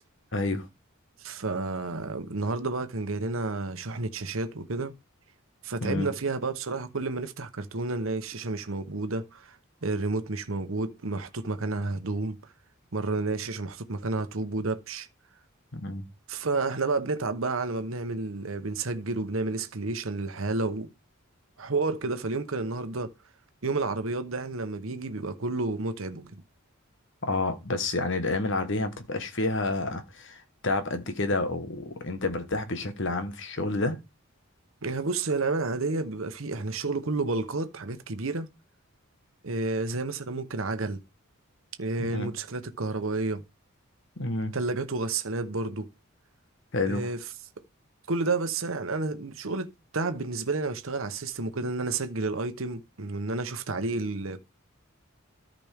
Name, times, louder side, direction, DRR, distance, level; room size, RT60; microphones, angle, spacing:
voice 1, 0.3-0.7 5.8-6.1 15.7-16.1 27.2-34.0 42.1-42.3 44.2-44.5 46.7-47.0, left 2 dB, 60° left, 1.3 m, -29 dB
voice 2, 1.2-4.9 5.6-9.6 9.8-12.4 12.9-15.1 16.3-20.9 21.6-23.1 23.6-26.4 34.8-38.5 39.4-41.0 41.8-43.4 44.5-45.9 46.9-47.2 48.1-54.4, right 3 dB, 70° right, 1.0 m, -30 dB
13.5 x 5.2 x 3.5 m
head